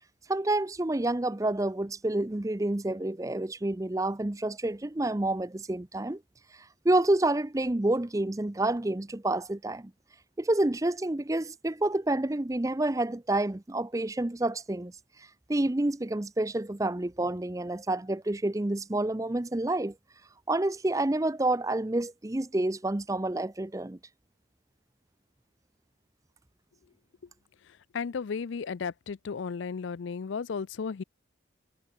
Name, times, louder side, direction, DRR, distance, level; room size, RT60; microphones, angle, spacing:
voice 1, 0.3-6.2 6.5-9.9 10.4-14.9 15.2-19.9 20.5-24.0, right 2 dB, 15° right, 0.5 m, -28 dB
voice 2, 27.9-31.0, left 5 dB, 70° left, 0.4 m, -34 dB
head